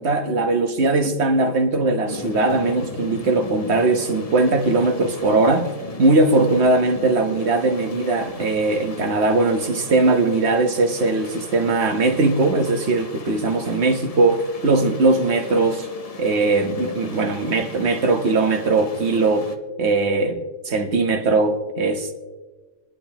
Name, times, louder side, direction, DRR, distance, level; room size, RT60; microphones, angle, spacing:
voice 1, 0.0-5.7 6.0-15.9 16.2-22.1, right 3 dB, 60° right, 1.5 m, -20 dB
sound 1, 2.1-19.6, left 3 dB, 35° left, 0.8 m, -38 dB
28.5 x 10.5 x 3.0 m
omnidirectional pair, 1.3 m